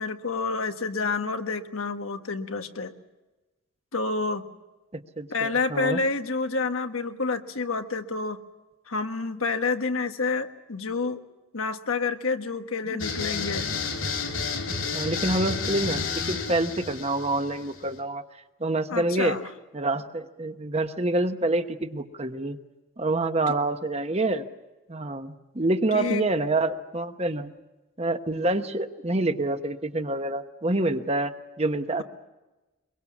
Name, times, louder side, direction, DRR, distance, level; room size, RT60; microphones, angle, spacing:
voice 1, 0.0-2.9 3.9-4.4 5.3-8.4 8.9-11.2 11.5-13.7 18.9-19.5 23.5-23.6 25.9-26.3, left 4 dB, 90° left, 7 dB, 1.5 m, -28 dB
voice 2, 4.9-6.0 12.9-13.0 14.8-18.2 18.6-19.4 19.7-22.6 23.0-24.4 24.9-27.5 28.0-32.0, right 2 dB, 30° right, 8 dB, 1.1 m, -27 dB
sound 1, 13.0-18.0, left 5 dB, 70° left, 3.8 m, -31 dB
24.0 x 22.5 x 7.3 m, 1.1 s
head